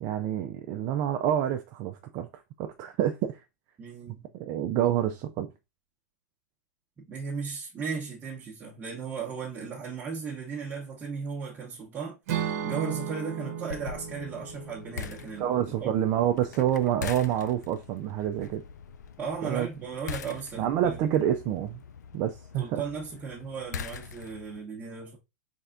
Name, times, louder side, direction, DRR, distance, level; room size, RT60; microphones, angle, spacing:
voice 1, 0.0-2.3 2.6-3.4 4.1-5.5 15.4-18.6 19.4-19.7 20.6-21.8 22.1-22.8, right 11 dB, 40° right, 0.4 m, -28 dB
voice 2, 3.8-4.2 7.0-12.2 12.6-16.0 19.2-21.0 22.6-25.2, right 5 dB, 20° right, 1.0 m, -36 dB
Acoustic guitar / Strum, 12.3-16.4, right 9 dB, 60° right, 0.9 m, -35 dB
sound 1, 13.7-24.6, left 6 dB, 85° left, 0.4 m, -43 dB
4.1 x 3.4 x 2.4 m
hypercardioid pair, 120°, 9 cm